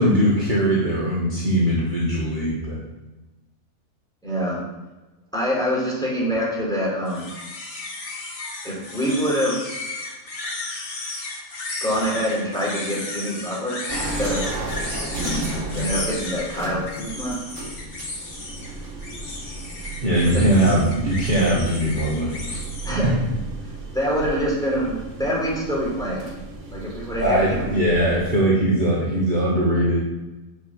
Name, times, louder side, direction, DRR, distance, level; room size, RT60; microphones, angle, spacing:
voice 1, 0.0-2.8 20.0-22.6 23.0-23.1 27.2-30.0, equal, 35° right, -6 dB, 1.9 m, -20 dB
voice 2, 4.2-4.6 5.3-7.3 8.6-9.6 11.8-14.4 15.7-17.4 20.2-20.4 22.8-23.1 23.9-26.2 26.7-27.7, equal, 5° left, -5 dB, 4.0 m, -25 dB
sound 1, 7.1-22.9, left 2 dB, 70° left, 2.2 m, -34 dB
sound 2, 13.9-28.2, right 2 dB, 60° right, 1.7 m, -33 dB
7.1 x 6.6 x 7.6 m, 1.1 s
omnidirectional pair, 1.5 m